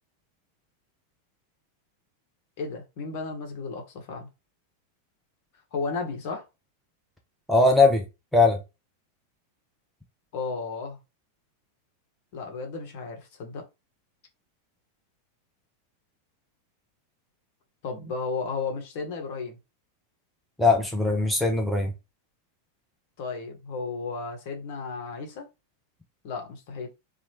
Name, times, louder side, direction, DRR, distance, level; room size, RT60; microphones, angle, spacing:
voice 1, 2.6-4.3 5.7-6.5 10.3-11.0 12.3-13.6 17.8-19.6 23.2-25.5 26.2-26.9, left 4 dB, 45° left, 0.9 m, -33 dB
voice 2, 7.5-8.0 8.3-8.6 20.6-21.9, left 3 dB, ahead, 0.5 m, -20 dB
3.0 x 2.0 x 3.2 m
figure-of-eight pair, 90°, 0 cm